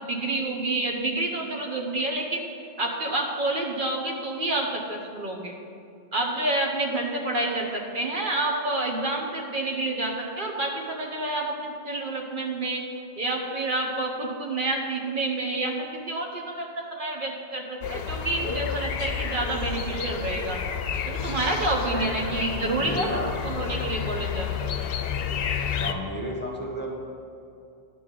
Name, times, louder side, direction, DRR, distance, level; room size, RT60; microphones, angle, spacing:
voice 1, 0.1-2.4 2.8-5.5 6.1-12.8 13.2-20.6 21.1-23.1 23.4-24.5, right 2 dB, 55° right, 0 dB, 1.1 m, -28 dB
sound 1, 17.8-25.9, left 7 dB, 70° left, 0.8 m, -30 dB
voice 2, 22.6-23.4 25.8-26.9, equal, 10° left, -2 dB, 1.0 m, -33 dB
10.5 x 3.7 x 7.5 m, 2.5 s
omnidirectional pair, 1.1 m